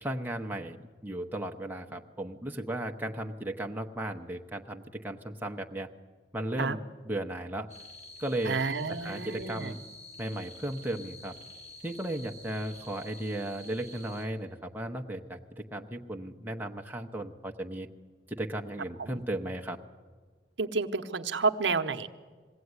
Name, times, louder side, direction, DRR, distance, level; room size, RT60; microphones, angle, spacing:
voice 1, 0.0-5.9 6.3-7.7 8.2-8.6 8.9-9.8 10.2-11.3 11.8-17.9 18.3-19.8, right 1 dB, 10° right, 2 dB, 0.9 m, -35 dB
sound 1, 7.7-14.3, left 1 dB, 40° left, 4.2 m, -49 dB
voice 2, 8.4-9.7 19.0-19.2 20.6-22.1, right 4 dB, 75° right, 8 dB, 0.9 m, -30 dB
21.0 x 16.0 x 9.6 m, 1.5 s
head